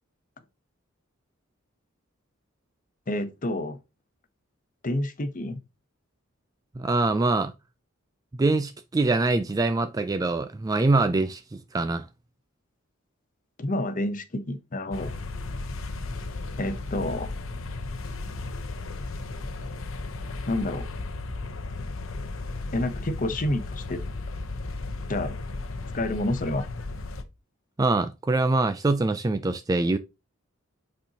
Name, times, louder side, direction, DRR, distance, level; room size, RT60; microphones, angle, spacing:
voice 1, 3.1-3.8 4.8-5.6 13.6-15.2 16.6-17.3 20.5-20.9 22.7-24.0 25.1-25.4 25.9-26.7, left 1 dB, 40° left, 0.8 m, -29 dB
voice 2, 6.8-7.5 8.4-12.1 27.8-30.0, right 2 dB, 15° right, 0.3 m, -24 dB
sound 1, 14.9-27.2, left 3 dB, 70° left, 0.8 m, -35 dB
8.2 x 4.4 x 2.8 m
head